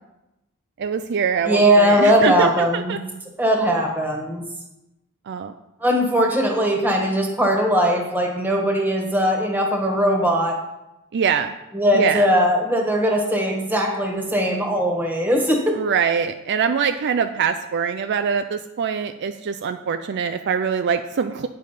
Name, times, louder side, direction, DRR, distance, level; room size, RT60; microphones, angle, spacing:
voice 1, 0.8-3.0 5.3-5.5 11.1-11.5 11.9-12.2 15.8-21.5, right 6 dB, 55° right, 8 dB, 0.4 m, -23 dB
voice 2, 1.5-3.0 3.4-4.4 5.8-10.6 11.7-15.8, equal, 10° right, 1 dB, 1.5 m, -19 dB
9.1 x 5.3 x 5.7 m, 0.94 s
head